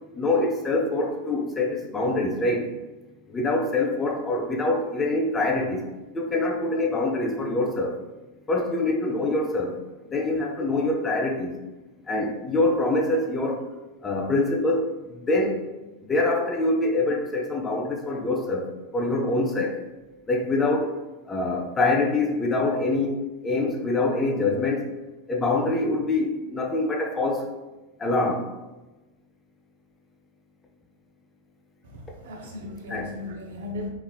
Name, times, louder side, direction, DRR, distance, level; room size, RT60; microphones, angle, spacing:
voice 1, 0.1-2.7 3.3-5.9 6.1-8.0 8.5-9.8 10.1-11.6 12.1-13.6 14.0-15.6 16.1-19.8 20.3-21.0 21.3-24.9 25.3-27.5 28.0-28.4 32.9-33.1, left 2 dB, 15° left, 0 dB, 0.4 m, -25 dB
voice 2, 31.8-33.9, left 2 dB, 55° right, 1 dB, 0.5 m, -36 dB
3.1 x 2.4 x 2.2 m, 1.1 s
figure-of-eight pair, 90°, 0 cm